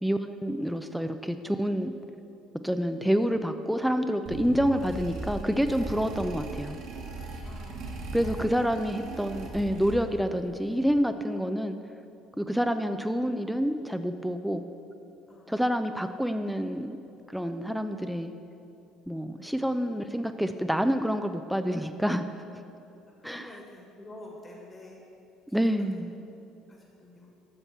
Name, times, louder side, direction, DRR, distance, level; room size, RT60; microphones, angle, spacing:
voice 1, 0.0-1.9 2.6-6.8 8.1-11.8 12.4-14.6 15.5-17.0 17.3-18.3 19.1-22.2 23.2-23.5 25.5-26.1, equal, ahead, 8 dB, 0.5 m, -28 dB
sound 1, 4.3-10.3, right 3 dB, 60° right, 1.5 m, -38 dB
voice 2, 7.4-8.6 9.6-9.8 15.3-15.6 23.0-25.0 25.5-25.6 25.9-26.0 26.7-27.3, left 1 dB, 25° left, -1 dB, 1.8 m, -49 dB
12.5 x 6.6 x 4.4 m, 2.8 s
hypercardioid pair, 60°, 0 cm